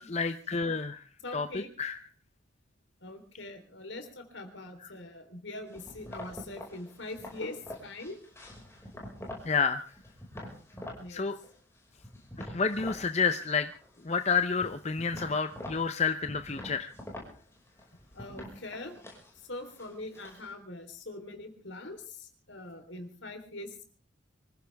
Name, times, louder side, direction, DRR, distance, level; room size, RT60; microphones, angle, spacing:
voice 1, 0.0-1.0 1.3-1.5 1.8-2.0 9.4-9.8 11.1-11.3 12.5-13.7 14.0-16.9, left 5 dB, 35° left, 9 dB, 0.7 m, -29 dB
voice 2, 1.2-1.7 3.0-8.2 11.0-11.3 18.1-19.0 19.5-23.8, left 2 dB, 70° left, 6 dB, 3.7 m, -43 dB
sound 1, 5.7-9.5 9.9-11.0 11.4-13.1 13.3-14.0 14.3-20.5, left 1 dB, 15° left, 5.4 m, -45 dB
24.5 x 15.5 x 3.5 m, 0.38 s
head